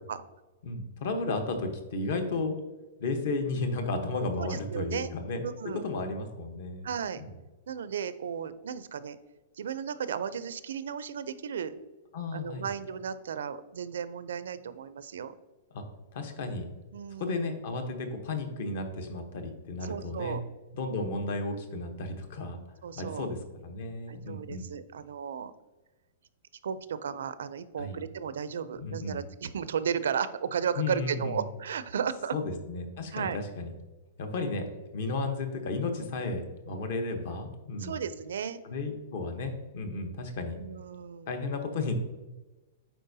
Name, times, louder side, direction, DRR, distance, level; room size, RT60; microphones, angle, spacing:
voice 1, 0.6-2.6 3.0-5.4 5.8-6.9 7.2-7.3 12.1-12.7 15.7-15.8 16.1-16.7 17.2-20.4 20.7-22.6 22.9-24.6 27.8-28.0 28.8-29.2 30.8-31.4 32.3-33.7 34.2-34.6 34.9-38.0 38.6-40.6 41.3-41.9, left 3 dB, 45° left, 6 dB, 0.9 m, -33 dB
voice 2, 4.4-5.1 5.4-5.9 6.8-7.2 7.7-9.2 9.6-11.7 12.3-15.3 16.9-17.4 19.8-20.4 22.8-23.3 24.1-25.5 26.6-32.3 33.1-33.4 37.8-38.6 40.5-41.3, right 7 dB, 85° right, 14 dB, 0.4 m, -34 dB
9.2 x 4.3 x 2.7 m, 1.2 s
supercardioid pair, 175°, 0 cm